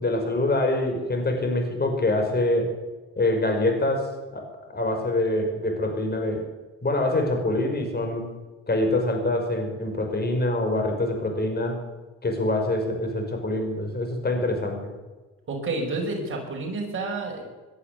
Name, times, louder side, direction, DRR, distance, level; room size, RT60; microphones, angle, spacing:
voice 1, 0.0-2.7 3.2-4.5 4.7-6.5 6.8-8.3 8.7-11.8 12.2-14.9, left 1 dB, 30° left, 4 dB, 5.5 m, -25 dB
voice 2, 15.5-17.4, right 3 dB, 40° right, 0 dB, 5.3 m, -29 dB
19.0 x 11.0 x 6.8 m, 1.2 s
cardioid pair, 90°, 30 cm